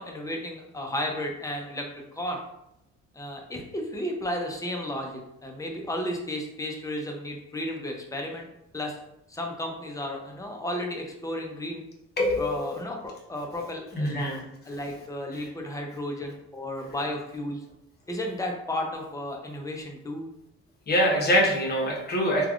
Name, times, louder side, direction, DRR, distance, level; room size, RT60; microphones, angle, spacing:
voice 1, 0.0-2.4 3.1-8.5 8.7-9.0 9.3-11.8 12.4-14.3 14.6-17.6 18.1-20.3, left 1 dB, 10° left, 1 dB, 0.5 m, -33 dB
voice 2, 12.2-12.5 13.9-14.4 15.3-15.4 20.9-22.5, equal, 35° left, -2 dB, 1.0 m, -24 dB
3.2 x 2.3 x 2.4 m, 0.84 s
cardioid pair, 90°, 30 cm